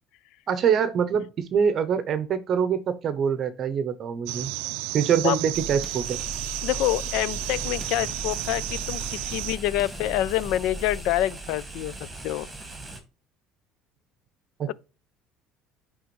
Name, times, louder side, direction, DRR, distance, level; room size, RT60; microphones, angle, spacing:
voice 1, 0.5-4.5 4.9-6.2 14.6-14.7, right 7 dB, 45° right, 0.7 m, -24 dB
sound 1, 4.3-9.6, right 18 dB, 90° right, 0.4 m, -33 dB
sound 2, 5.5-11.3, equal, 15° left, 0.6 m, -38 dB
sound 3, 6.0-13.0, right 2 dB, 10° right, 1.9 m, -41 dB
voice 2, 6.6-11.9 12.2-12.5 14.7-14.8, left 14 dB, 70° left, 0.4 m, -26 dB
10.5 x 3.5 x 3.0 m
cardioid pair, 130°, 0 cm